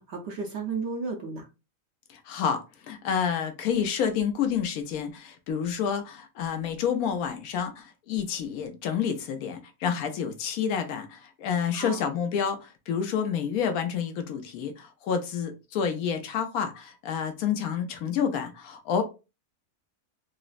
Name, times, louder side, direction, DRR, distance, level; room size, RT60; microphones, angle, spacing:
voice 1, 0.0-1.5 11.7-12.0, right 4 dB, 55° right, 0.8 m, -33 dB
voice 2, 2.1-19.0, left 7 dB, 80° left, 1.1 m, -29 dB
3.9 x 2.0 x 2.4 m
omnidirectional pair, 1.5 m